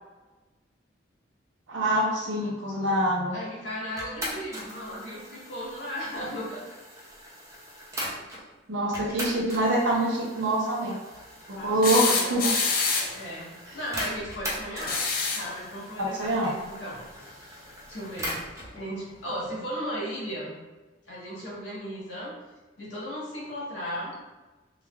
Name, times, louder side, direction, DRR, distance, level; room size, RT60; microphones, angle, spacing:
voice 1, 1.7-3.4 8.7-11.0 11.5-12.4 16.0-16.5, right 1 dB, 90° right, -4 dB, 0.6 m, -25 dB
voice 2, 3.3-6.6 11.6-12.3 13.0-15.0 15.3-17.6 17.9-18.4 18.7-20.6 21.1-22.3 22.8-24.1, equal, 80° left, -7 dB, 1.1 m, -36 dB
sound 1, 4.0-8.4 8.9-18.7, equal, 15° right, 0.5 m, -40 dB
sound 2, 11.8-13.3 14.8-15.5 17.2-17.3 18.8-18.9, left 4 dB, 50° left, 0.4 m, -26 dB
3.1 x 2.3 x 2.2 m, 1.2 s
head